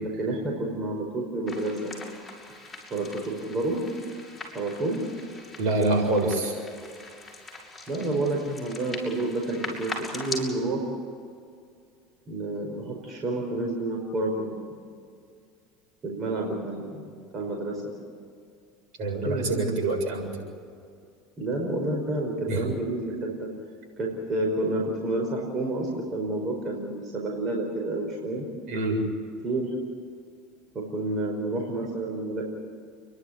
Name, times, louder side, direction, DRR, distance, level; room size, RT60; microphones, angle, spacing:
voice 1, 0.0-2.1 2.9-3.9 4.5-5.0 7.9-10.8 12.3-14.7 16.0-17.8 19.2-19.6 21.4-23.5 24.0-28.4 29.4-29.7 30.7-32.4, right 2 dB, 35° right, 0 dB, 4.9 m, -29 dB
sound 1, 1.5-10.4, left 2 dB, 10° left, 6.4 m, -41 dB
voice 2, 5.6-6.5 19.0-20.3 22.5-22.6 28.7-29.0, right 2 dB, 60° right, 1 dB, 7.2 m, -25 dB
29.5 x 11.5 x 10.0 m, 2.3 s
supercardioid pair, 95°, 0 cm